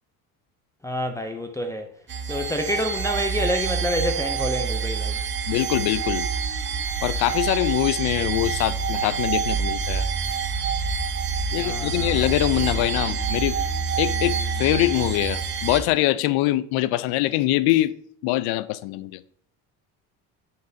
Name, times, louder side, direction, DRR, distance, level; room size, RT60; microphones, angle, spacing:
voice 1, 0.8-1.9 2.2-5.2 11.6-12.3, left 1 dB, 10° left, 0.5 m, -28 dB
sound 1, 2.1-15.8, right 5 dB, 30° right, 0.7 m, -27 dB
voice 2, 5.5-6.3 7.0-10.1 11.5-13.6 14.0-17.9 18.2-19.2, left 16 dB, 75° left, 0.5 m, -23 dB
10.5 x 4.0 x 2.7 m
cardioid pair, 115°, 39 cm